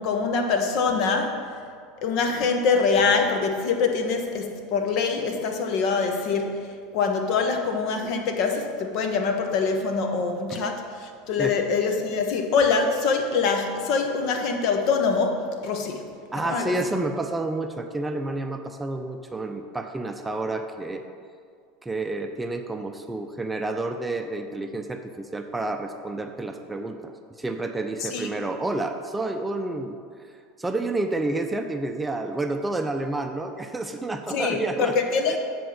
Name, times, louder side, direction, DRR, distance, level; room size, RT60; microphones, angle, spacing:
voice 1, 0.0-1.5 2.0-6.6 6.9-16.0 16.4-16.7 28.0-28.3 34.3-35.4, left 5 dB, 55° left, 4 dB, 0.9 m, -24 dB
voice 2, 16.3-21.0 21.8-30.0 30.6-34.9 35.3-35.4, right 2 dB, 10° right, 5 dB, 0.6 m, -29 dB
7.8 x 4.2 x 6.5 m, 2.2 s
hypercardioid pair, 80°, 0 cm